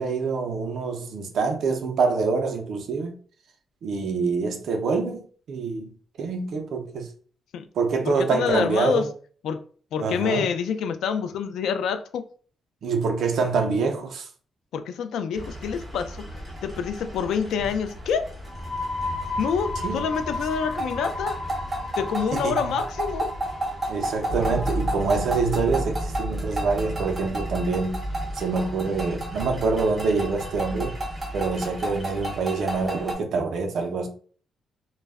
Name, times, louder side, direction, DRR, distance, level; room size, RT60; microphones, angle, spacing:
voice 1, 0.0-3.1 3.8-5.2 5.5-7.1 7.7-9.1 10.0-10.5 12.8-14.3 19.8-20.1 22.3-22.8 23.9-28.0 28.3-30.9 31.3-34.1, right 4 dB, 60° right, 0.5 m, -26 dB
voice 2, 8.0-9.1 9.4-9.6 9.9-12.2 14.7-16.3 16.6-18.2 19.4-21.4 22.0-23.3, left 6 dB, 85° left, 0.3 m, -27 dB
sound 1, 15.3-33.1, right 1 dB, 15° right, 0.7 m, -33 dB
sound 2, 18.4-25.9, left 2 dB, 35° left, 0.7 m, -35 dB
sound 3, 24.3-32.4, equal, 60° left, 1.0 m, -33 dB
2.2 x 2.0 x 3.4 m
wide cardioid pair, 175°, 0 cm